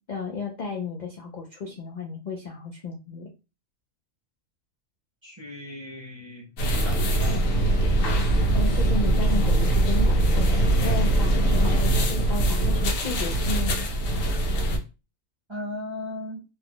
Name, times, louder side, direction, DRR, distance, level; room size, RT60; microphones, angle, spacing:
voice 1, 0.1-3.3 8.5-13.9, left 4 dB, 55° left, -1 dB, 0.5 m, -33 dB
voice 2, 5.2-7.0 10.8-11.0 15.5-16.4, left 1 dB, 25° right, -2 dB, 0.8 m, -37 dB
sound 1, 6.6-14.8, right 1 dB, 75° left, 1.1 m, -22 dB
2.7 x 2.4 x 3.5 m, 0.30 s
omnidirectional pair, 1.4 m